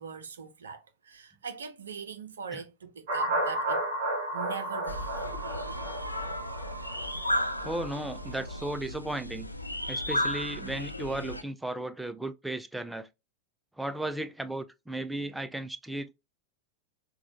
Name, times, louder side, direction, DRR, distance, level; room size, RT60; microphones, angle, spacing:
voice 1, 0.0-3.8 4.3-5.3, right 6 dB, 70° right, 0.4 m, -41 dB
sound 1, 3.1-8.7, right 2 dB, 50° right, 1.8 m, -33 dB
sound 2, 4.9-11.4, left 1 dB, 85° left, 0.3 m, -34 dB
voice 2, 7.6-9.5 9.9-13.1 13.8-16.2, right 1 dB, 5° right, 0.4 m, -35 dB
4.0 x 2.2 x 2.8 m
figure-of-eight pair, 90°, 0 cm